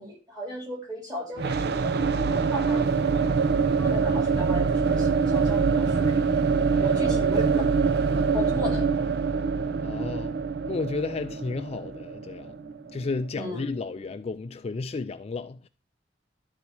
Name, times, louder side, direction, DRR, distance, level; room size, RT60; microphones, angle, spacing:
voice 1, 0.0-3.4 3.8-6.2 6.8-7.6 8.3-8.9 13.3-13.6, left 1 dB, 20° right, 3.3 m, -36 dB
sound 1, 1.4-13.2, right 5 dB, 60° right, 0.5 m, -24 dB
voice 2, 6.7-7.4 9.8-10.4 10.7-15.7, left 3 dB, 35° left, 0.3 m, -33 dB
12.0 x 4.1 x 4.5 m
head